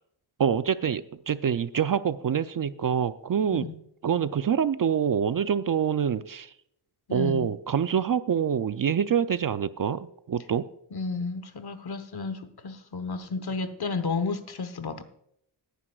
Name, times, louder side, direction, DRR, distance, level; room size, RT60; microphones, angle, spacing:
voice 1, 0.4-3.7 4.0-6.5 7.1-10.7, right 8 dB, 45° right, 13 dB, 0.4 m, -26 dB
voice 2, 7.1-7.5 10.9-15.0, left 4 dB, 55° left, 10 dB, 1.1 m, -32 dB
18.5 x 10.0 x 2.3 m, 0.73 s
wide cardioid pair, 135°, 47 cm